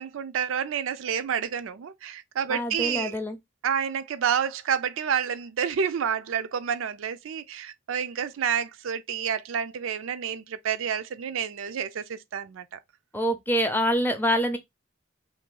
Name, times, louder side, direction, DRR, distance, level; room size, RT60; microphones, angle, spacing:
voice 1, 0.0-3.2 3.6-12.8, right 7 dB, 80° right, 0.4 m, -29 dB
voice 2, 2.5-3.4 13.1-14.6, equal, 10° left, 0.5 m, -25 dB
2.7 x 2.6 x 3.7 m
head